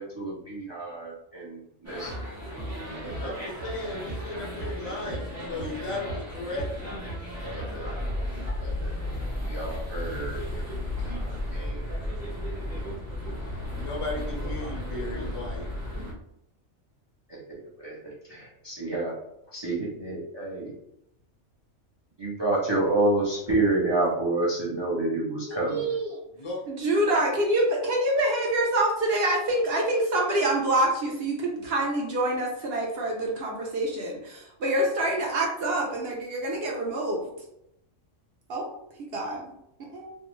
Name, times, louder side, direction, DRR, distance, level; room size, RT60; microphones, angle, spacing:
voice 1, 0.0-2.5 3.0-3.3 7.4-7.9 8.6-8.9 9.4-10.6 11.5-12.1 17.3-19.1 19.5-20.7 22.2-25.9, right 2 dB, 45° right, -5 dB, 0.3 m, -29 dB
sound 1, 1.8-16.1, left 1 dB, 15° right, 0.7 m, -34 dB
voice 2, 3.2-6.9 13.8-15.7 26.4-26.6, left 2 dB, 55° left, -2 dB, 0.3 m, -35 dB
voice 3, 25.5-26.2 26.7-37.3 38.5-38.7 39.0-39.4 39.8-40.1, right 1 dB, 65° right, -1 dB, 0.7 m, -26 dB
2.5 x 2.1 x 2.9 m, 0.81 s
omnidirectional pair, 1.3 m